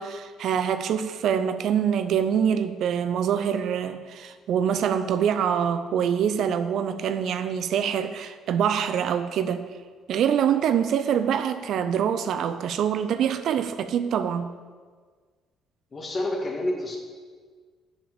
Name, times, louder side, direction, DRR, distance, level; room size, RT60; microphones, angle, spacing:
voice 1, 0.0-9.7 10.1-14.5, right 8 dB, 65° right, 10 dB, 0.5 m, -25 dB
voice 2, 15.9-17.0, left 1 dB, 40° left, 1 dB, 2.2 m, -28 dB
7.4 x 7.0 x 7.0 m, 1.5 s
hypercardioid pair, 55°, 0 cm